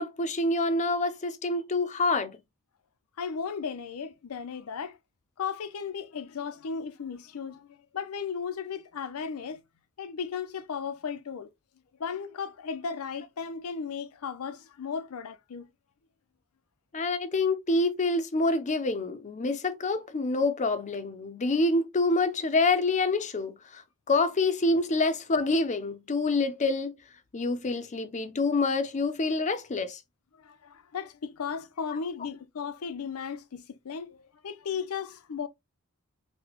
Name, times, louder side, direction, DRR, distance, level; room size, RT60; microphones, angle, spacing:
voice 1, 0.0-2.4 16.9-23.8 24.1-26.9 27.3-30.0, left 3 dB, 35° left, 0.5 m, -27 dB
voice 2, 3.2-5.0 5.4-9.6 10.0-11.5 12.0-15.7 30.3-35.5, left 6 dB, 80° left, 0.5 m, -35 dB
4.0 x 2.2 x 2.9 m
head